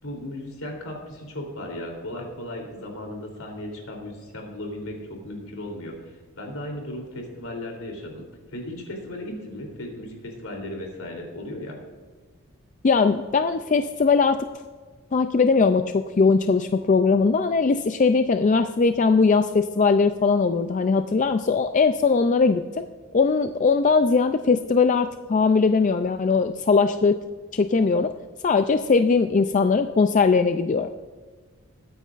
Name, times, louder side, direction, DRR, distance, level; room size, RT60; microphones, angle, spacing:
voice 1, 0.0-8.2 8.5-11.8, left 1 dB, 75° left, 1 dB, 3.3 m, -36 dB
voice 2, 12.8-14.5 15.1-22.6 23.1-27.2 27.5-28.1 28.4-30.9, left 4 dB, 35° left, 8 dB, 0.3 m, -20 dB
21.5 x 9.4 x 2.5 m, 1.5 s
head